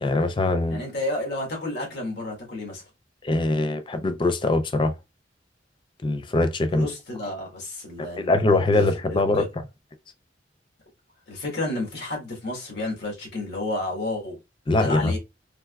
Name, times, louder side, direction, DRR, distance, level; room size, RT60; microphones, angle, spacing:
voice 1, 0.0-0.8 3.2-4.9 6.0-6.9 8.0-9.4 14.7-15.2, left 2 dB, 25° left, 0.4 m, -22 dB
voice 2, 0.7-2.8 6.7-8.6 9.1-9.5 11.3-14.4 14.8-15.2, left 2 dB, 65° left, 1.4 m, -31 dB
3.3 x 3.0 x 2.3 m
head